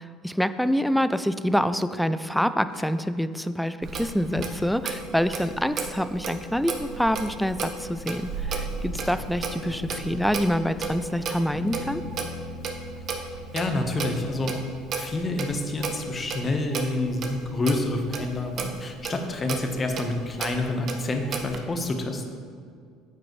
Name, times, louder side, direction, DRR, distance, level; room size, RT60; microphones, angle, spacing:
voice 1, 0.0-12.0, equal, ahead, 12 dB, 0.3 m, -26 dB
Fire, 2.7-2.9 4.1-13.2, left 5 dB, 90° left, 0.6 m, -45 dB
Clock, 3.8-21.6, right 4 dB, 45° right, 0.9 m, -34 dB
sound 1, 11.5-15.9, left 1 dB, 20° right, 1.3 m, -41 dB
voice 2, 13.5-14.6 15.0-22.2, left 2 dB, 25° left, 4 dB, 1.0 m, -28 dB
9.5 x 7.5 x 3.1 m, 2.2 s
supercardioid pair, 110°, 0 cm